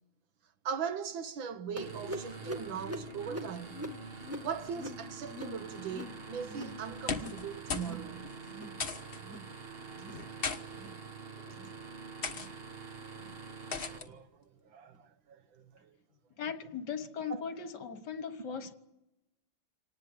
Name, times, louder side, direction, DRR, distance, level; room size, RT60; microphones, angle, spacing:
voice 1, 0.7-3.9 4.4-8.3 13.8-15.9 17.3-17.4, right 7 dB, 75° right, 1.9 m, -40 dB
sound 1, 1.8-6.8 7.1-7.5 7.7-8.1 8.4-8.8 9.2-9.5 9.9-10.3 10.7-11.0 11.5-11.8 12.3-12.6 13.2-13.4 14.1-14.2 14.9-15.0, equal, 5° right, 1.7 m, -44 dB
sound 2, 1.8-14.0, right 5 dB, 35° right, 1.4 m, -46 dB
sound 3, 6.9-7.4 7.7-8.0 8.2-8.3 8.8-9.2 10.1-10.6 11.4-11.6 12.2-12.5 13.7-14.1, left 5 dB, 35° left, 1.3 m, -36 dB
voice 2, 16.4-18.7, left 6 dB, 60° left, 1.9 m, -38 dB
26.0 x 19.0 x 9.1 m
omnidirectional pair, 2.2 m